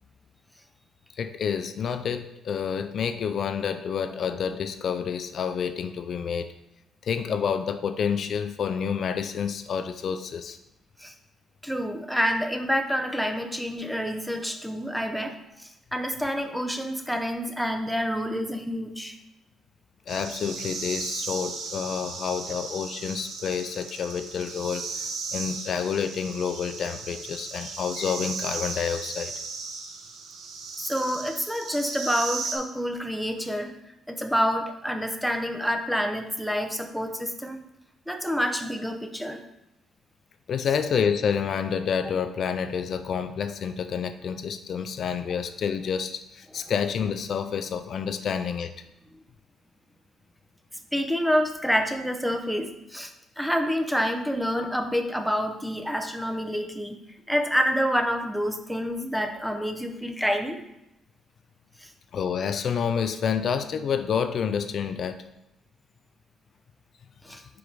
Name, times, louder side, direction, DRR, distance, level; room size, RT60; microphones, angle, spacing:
voice 1, 1.2-6.5 7.0-10.6 20.1-29.3 40.5-48.7 62.1-65.2, left 7 dB, 60° left, 9 dB, 0.4 m, -29 dB
voice 2, 11.6-19.2 30.8-33.7 34.1-37.6 38.1-39.4 50.9-57.0 57.3-60.6 61.8-61.9 67.2-67.4, equal, ahead, 6 dB, 0.7 m, -28 dB
sound 1, 20.1-32.6, right 4 dB, 80° right, 0.9 m, -36 dB
5.0 x 4.5 x 5.2 m, 0.86 s
cardioid pair, 90°, 0 cm